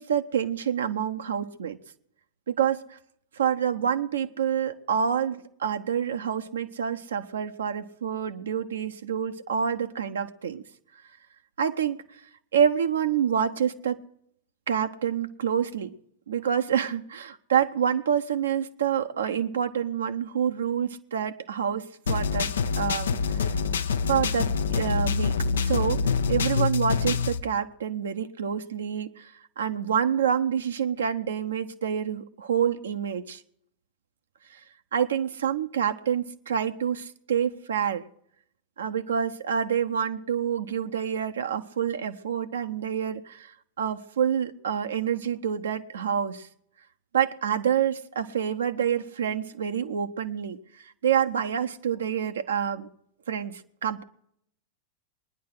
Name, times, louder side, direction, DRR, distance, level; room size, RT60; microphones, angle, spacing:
voice 1, 0.0-1.8 2.5-3.0 3.3-10.6 11.6-12.0 12.5-14.0 14.7-15.9 16.3-23.4 24.1-33.4 34.5-34.6 34.9-38.0 38.8-46.5 47.1-52.9 53.3-54.0, right 8 dB, 65° right, 7 dB, 0.8 m, -27 dB
sound 1, 22.1-27.4, left 5 dB, 65° left, 0.7 m, -26 dB
21.5 x 10.0 x 6.4 m, 0.70 s
figure-of-eight pair, 90°, 0 cm